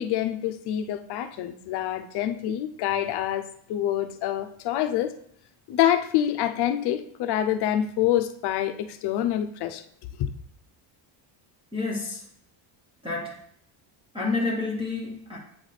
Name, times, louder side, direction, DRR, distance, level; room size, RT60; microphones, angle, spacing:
voice 1, 0.0-5.1 5.7-9.8 10.2-10.3, left 11 dB, 55° left, 0.6 m, -26 dB
voice 2, 11.7-12.3 13.0-13.4 14.1-15.4, left 3 dB, 10° right, 0.6 m, -29 dB
8.6 x 4.0 x 3.2 m
cardioid pair, 180°, 49 cm